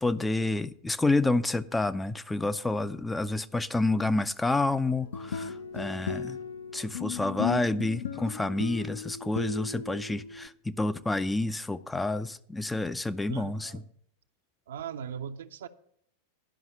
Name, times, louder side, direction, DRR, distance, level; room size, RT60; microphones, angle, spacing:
voice 1, 0.0-6.4 6.7-10.5 10.8-13.8, left 2 dB, 10° left, 0.4 m, -29 dB
sound 1, 4.9-10.5, left 7 dB, 65° left, 0.6 m, -36 dB
voice 2, 13.3-13.8 14.7-15.7, right 8 dB, 60° right, 0.6 m, -39 dB
11.0 x 5.6 x 6.9 m
figure-of-eight pair, 90°, 0 cm